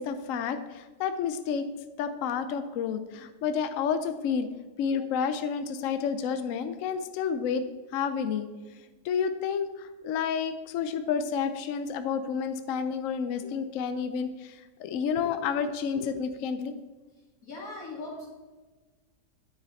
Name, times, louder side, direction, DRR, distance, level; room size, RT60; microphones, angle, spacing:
voice 1, 0.0-1.6 2.0-4.5 4.8-7.6 7.9-8.5 9.0-14.5 14.8-16.7, left 6 dB, 70° left, 9 dB, 0.7 m, -30 dB
voice 2, 17.4-18.3, left 2 dB, 55° left, -3 dB, 2.6 m, -39 dB
9.6 x 6.6 x 4.1 m, 1.3 s
omnidirectional pair, 1.9 m